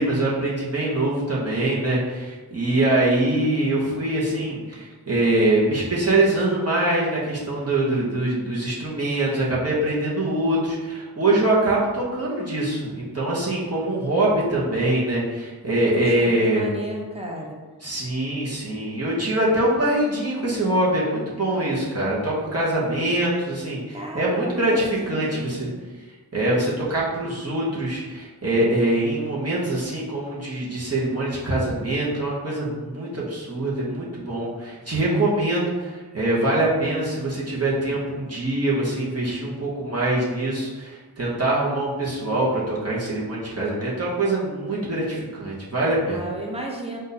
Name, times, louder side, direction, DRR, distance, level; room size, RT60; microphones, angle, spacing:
voice 1, 0.0-16.7 17.8-25.7 26.3-46.2, right 1 dB, 40° right, -7 dB, 1.1 m, -23 dB
voice 2, 15.9-17.6 23.9-25.8 46.1-47.0, right 1 dB, 15° right, -1 dB, 0.9 m, -34 dB
4.1 x 2.6 x 4.1 m, 1.3 s
wide cardioid pair, 50°, 38 cm